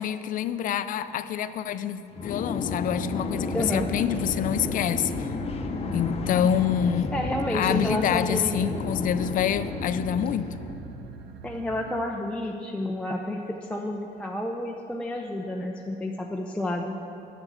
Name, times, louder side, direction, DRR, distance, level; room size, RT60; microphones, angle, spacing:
voice 1, 0.0-5.3 5.9-7.1 7.5-10.5, left 9 dB, 55° left, 13 dB, 0.5 m, -27 dB
sound 1, 2.1-11.1, left 4 dB, 35° left, 0.8 m, -32 dB
sound 2, 3.0-12.0, right 4 dB, 75° right, 0.8 m, -41 dB
voice 2, 3.5-3.9 7.1-8.9 11.4-17.0, left 1 dB, 5° left, 0 dB, 0.6 m, -30 dB
9.6 x 6.1 x 8.0 m, 3.0 s
cardioid pair, 110°, 17 cm